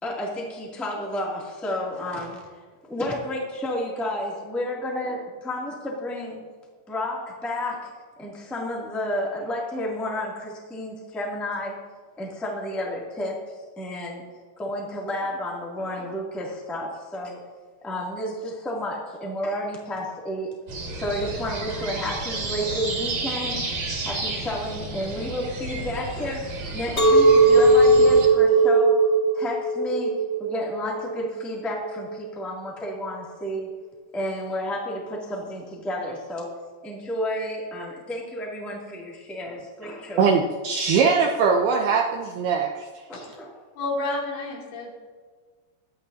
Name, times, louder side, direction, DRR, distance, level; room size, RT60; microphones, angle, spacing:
voice 1, 0.0-2.4 2.9-6.4 6.9-7.9 8.2-11.8 12.2-13.4 13.7-14.2 14.6-17.4 17.8-20.6 21.0-23.6 24.0-29.0 29.3-33.7 34.1-36.5 36.8-40.2 43.1-43.5, left 1 dB, ahead, -3 dB, 1.0 m, -31 dB
sound 1, 20.7-28.3, right 2 dB, 45° right, 3.6 m, -32 dB
Chink clink, 27.0-32.1, right 2 dB, 40° left, 0.9 m, -18 dB
voice 2, 40.2-42.7, right 5 dB, 75° right, 2 dB, 2.4 m, -21 dB
voice 3, 43.8-44.9, left 2 dB, 80° left, -3 dB, 5.2 m, -30 dB
19.5 x 13.5 x 2.8 m, 1.5 s
omnidirectional pair, 5.3 m